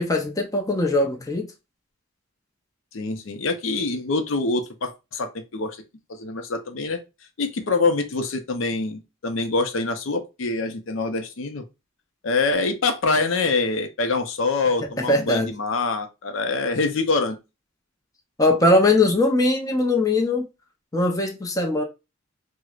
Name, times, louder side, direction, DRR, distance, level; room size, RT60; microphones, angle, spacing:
voice 1, 0.0-1.5 14.8-15.5 18.4-20.5 20.9-21.8, left 2 dB, 15° left, 0.5 m, -21 dB
voice 2, 2.9-5.8 6.1-7.0 7.4-11.6 12.2-17.4, left 3 dB, 70° left, 0.6 m, -25 dB
4.5 x 2.1 x 2.3 m
head